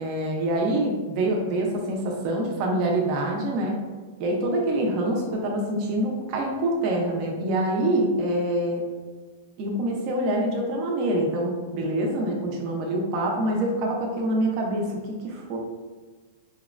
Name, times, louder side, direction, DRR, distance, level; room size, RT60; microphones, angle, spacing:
voice 1, 0.0-3.8 4.2-8.9 9.6-15.6, right 1 dB, 35° right, 0 dB, 0.5 m, -25 dB
4.1 x 2.0 x 2.4 m, 1.4 s
supercardioid pair, 165°, 0 cm